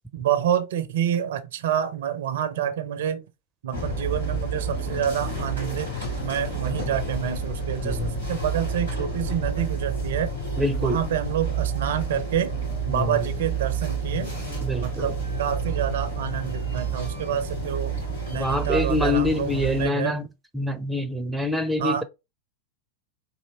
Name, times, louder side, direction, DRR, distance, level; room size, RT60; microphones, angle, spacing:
voice 1, 0.1-3.3 3.6-5.9 6.2-10.3 10.8-12.5 12.9-14.3 14.8-18.0 18.3-20.1 21.8-22.0, right 9 dB, 55° right, 0.4 m, -28 dB
sound 1, 3.7-19.9, right 4 dB, 85° left, 2.3 m, -29 dB
voice 2, 10.6-11.0 12.9-13.2 14.6-15.1 18.3-20.3 20.5-22.0, left 1 dB, 5° right, 0.5 m, -26 dB
4.1 x 2.7 x 2.8 m
figure-of-eight pair, 90°, 0 cm